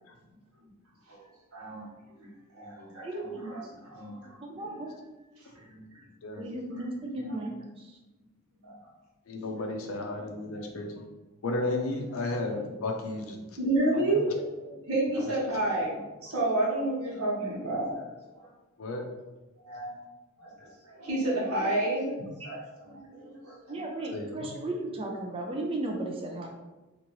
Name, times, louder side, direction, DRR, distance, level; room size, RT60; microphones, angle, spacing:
voice 1, 1.0-4.8 5.4-6.1 6.7-6.9 7.2-7.4 8.6-8.9 10.0-10.1 10.5-10.7 13.6-18.0 18.3-18.5 19.6-20.0 20.4-24.1, right 2 dB, 85° right, -5 dB, 1.1 m, -32 dB
voice 2, 3.0-3.5 4.4-4.9 6.4-7.5 7.8-7.9 23.7-26.5, right 2 dB, 25° right, 0 dB, 0.4 m, -35 dB
voice 3, 9.3-11.1 11.4-13.4 13.9-14.4 15.2-15.6 18.8-19.1 24.1-24.6, left 2 dB, 70° left, 2 dB, 0.5 m, -34 dB
2.9 x 2.5 x 3.0 m, 1.1 s
head